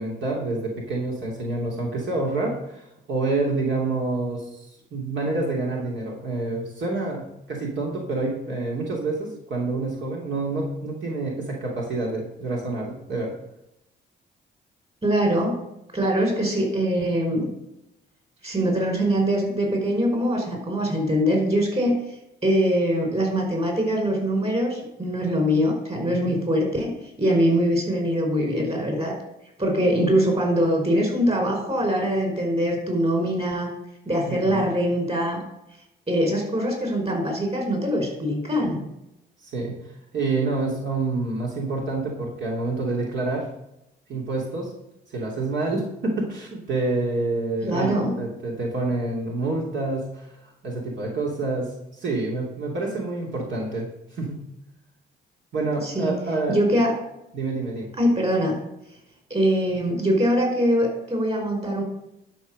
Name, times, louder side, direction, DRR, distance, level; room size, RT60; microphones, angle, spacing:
voice 1, 0.0-13.3 26.1-26.3 34.3-34.7 39.4-39.7 40.1-43.5 44.1-44.7 45.1-50.3 50.6-54.5 55.5-56.6 57.3-57.9, right 2 dB, 65° right, -2 dB, 2.8 m, -28 dB
voice 2, 15.0-15.5 15.9-17.5 18.4-22.0 22.4-26.9 27.2-29.1 29.6-33.7 34.0-35.4 36.1-38.8 47.6-48.1 55.8-56.1 56.5-56.9 58.0-58.6 59.3-61.8, equal, 30° right, 2 dB, 5.0 m, -23 dB
12.0 x 5.8 x 6.6 m, 0.86 s
cardioid pair, 90°, 20 cm